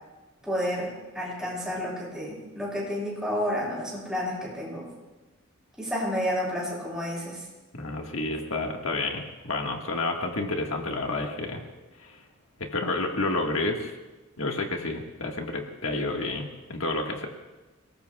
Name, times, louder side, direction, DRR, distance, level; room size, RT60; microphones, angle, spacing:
voice 1, 0.5-4.9 5.8-7.4, equal, 5° right, -6 dB, 6.9 m, -30 dB
voice 2, 7.7-11.6 12.0-12.2 12.6-13.9 14.4-17.3, left 2 dB, 70° left, 1 dB, 1.7 m, -30 dB
29.0 x 19.5 x 2.3 m, 1.2 s
head